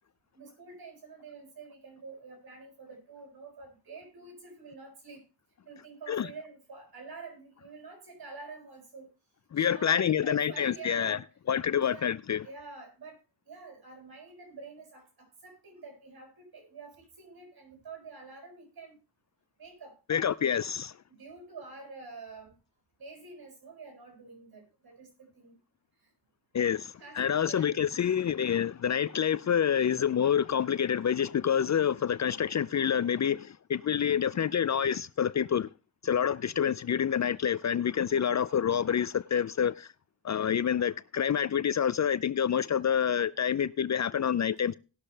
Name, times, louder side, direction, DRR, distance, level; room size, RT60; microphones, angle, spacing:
voice 1, 0.3-5.2 5.6-9.1 9.6-11.2 11.8-12.1 12.4-13.2 13.5-18.9 19.6-20.3 21.1-22.5 23.0-25.1 25.3-25.5 27.0-27.7, right 4 dB, 60° right, 6.8 m, -47 dB
voice 2, 9.5-11.2 11.5-12.5 20.1-21.0 26.5-35.7 36.0-39.9 40.2-44.7, left 8 dB, 45° left, 0.5 m, -27 dB
19.0 x 6.6 x 3.3 m
cardioid pair, 70°, 41 cm